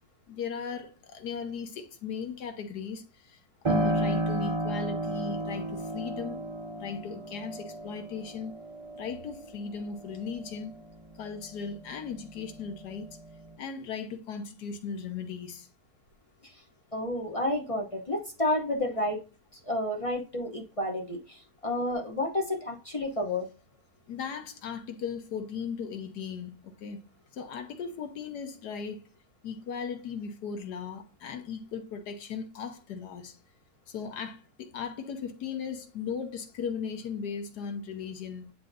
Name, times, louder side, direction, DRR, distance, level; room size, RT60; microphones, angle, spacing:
voice 1, 0.3-3.4 3.6-6.4 6.8-8.5 9.0-10.7 11.2-13.1 13.6-15.7 24.1-27.0 27.3-29.0 29.4-33.4 33.9-38.5, left 6 dB, 85° left, 1.5 m, -37 dB
Piano, 3.6-12.1 12.5-13.5, right 1 dB, 25° right, 0.7 m, -33 dB
voice 2, 16.9-19.2 19.5-23.5, left 1 dB, 35° left, 0.6 m, -31 dB
9.4 x 4.5 x 2.6 m
omnidirectional pair, 1.7 m